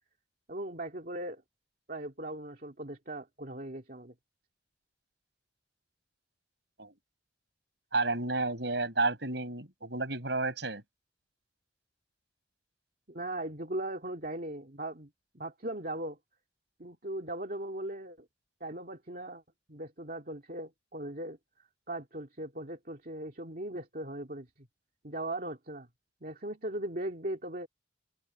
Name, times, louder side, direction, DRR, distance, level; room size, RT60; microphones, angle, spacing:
voice 1, 0.5-1.4 1.9-4.1 13.1-15.1 15.3-16.2 16.8-18.3 18.6-19.4 19.7-21.4 21.9-24.7 25.0-25.9 26.2-27.7, right 1 dB, 50° right, 2.4 m, -38 dB
voice 2, 7.9-10.8, right 3 dB, 70° right, 6.2 m, -31 dB
head